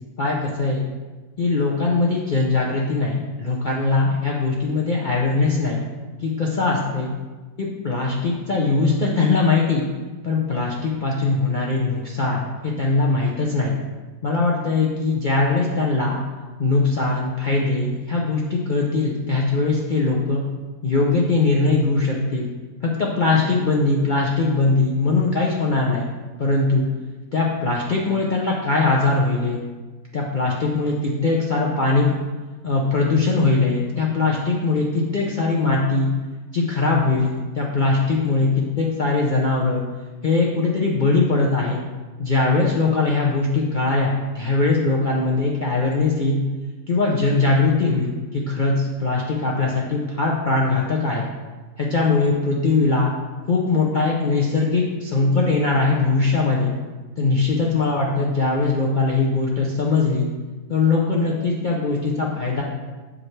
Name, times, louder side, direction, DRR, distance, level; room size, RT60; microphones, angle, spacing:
voice 1, 0.2-0.8 1.4-5.8 6.2-7.1 7.6-9.8 10.2-13.7 14.2-16.2 16.6-20.4 20.8-22.5 22.8-26.1 26.4-26.8 27.3-29.6 30.1-32.2 32.6-36.1 36.5-38.5 38.8-39.8 40.2-41.8 42.2-46.4 46.9-51.2 51.8-53.1 53.5-56.7 57.2-60.3 60.7-62.6, left 3 dB, 70° left, -3 dB, 0.4 m, -21 dB
7.3 x 4.9 x 3.2 m, 1.3 s
omnidirectional pair, 1.8 m